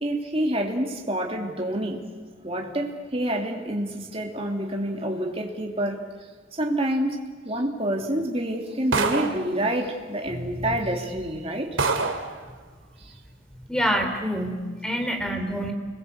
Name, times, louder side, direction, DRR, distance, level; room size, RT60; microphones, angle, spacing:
voice 1, 0.0-2.0 2.4-6.0 6.5-7.2 7.4-12.1 13.0-13.2 15.0-15.1, right 1 dB, 30° right, 1 dB, 2.9 m, -28 dB
sound 1, 8.9-9.5 10.5-10.6 11.2-11.3 11.8-12.3, right 4 dB, 80° right, 2.6 m, -25 dB
voice 2, 10.3-10.7 13.7-15.7, equal, 5° left, 4 dB, 3.3 m, -27 dB
29.5 x 22.0 x 8.3 m, 1.5 s
head